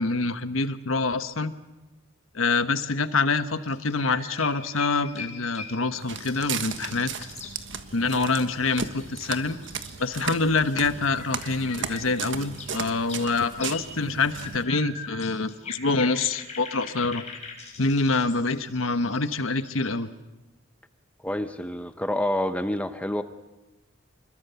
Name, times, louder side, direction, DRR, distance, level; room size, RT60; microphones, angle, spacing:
voice 1, 0.0-1.5 2.3-7.1 7.9-9.6 10.0-17.2 17.8-20.1, left 3 dB, 80° left, 11 dB, 1.2 m, -26 dB
sound 1, 3.6-19.9, left 4 dB, 35° left, 5.0 m, -43 dB
Walk footsteps, 6.0-14.6, right 6 dB, 65° right, 1.4 m, -36 dB
voice 2, 21.2-23.2, left 1 dB, 5° left, 10 dB, 0.9 m, -28 dB
26.5 x 21.5 x 7.0 m, 1.1 s
head